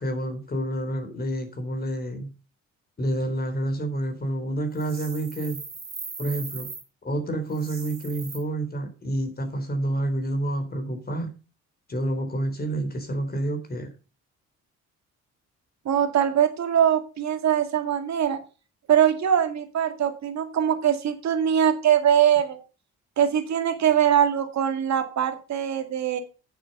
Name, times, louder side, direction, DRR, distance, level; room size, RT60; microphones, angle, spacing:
voice 1, 0.0-2.3 3.0-5.6 6.2-6.7 7.0-11.3 11.9-13.9, right 1 dB, 30° left, 5 dB, 3.9 m, -28 dB
sound 1, 4.7-6.8 7.5-8.4, right 4 dB, 30° right, 4.3 m, -39 dB
voice 2, 15.9-18.4 18.9-22.6 23.2-26.2, right 9 dB, 65° right, 7 dB, 2.1 m, -22 dB
8.9 x 7.8 x 5.4 m, 0.34 s
cardioid pair, 90°, 30 cm